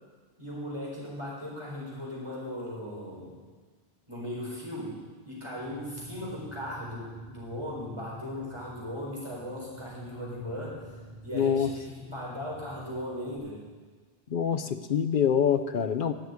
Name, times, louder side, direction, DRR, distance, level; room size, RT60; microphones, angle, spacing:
voice 1, 0.4-3.4 4.1-10.8 11.2-11.7 11.9-13.6, left 1 dB, 30° right, -6 dB, 4.6 m, -38 dB
sound 1, 5.4-13.4, left 2 dB, 15° left, 3.2 m, -48 dB
voice 2, 11.3-11.7 14.3-16.1, left 8 dB, 55° left, 9 dB, 0.9 m, -25 dB
11.5 x 6.6 x 9.4 m, 1.4 s
omnidirectional pair, 1.1 m